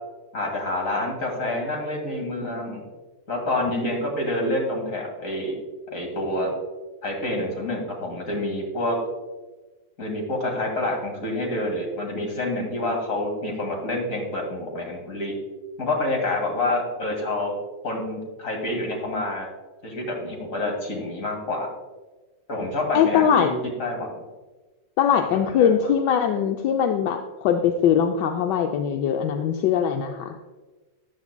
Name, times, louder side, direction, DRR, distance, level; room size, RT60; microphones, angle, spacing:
voice 1, 0.3-2.9 3.3-5.5 5.9-6.5 7.0-9.0 10.0-15.4 15.8-17.5 17.8-19.5 19.8-21.7 22.5-24.1 25.5-25.9, left 1 dB, 45° left, 1 dB, 2.4 m, -27 dB
voice 2, 22.9-23.5 25.0-30.4, left 8 dB, 75° left, 4 dB, 1.2 m, -21 dB
13.0 x 9.7 x 2.2 m, 1.2 s
omnidirectional pair, 2.0 m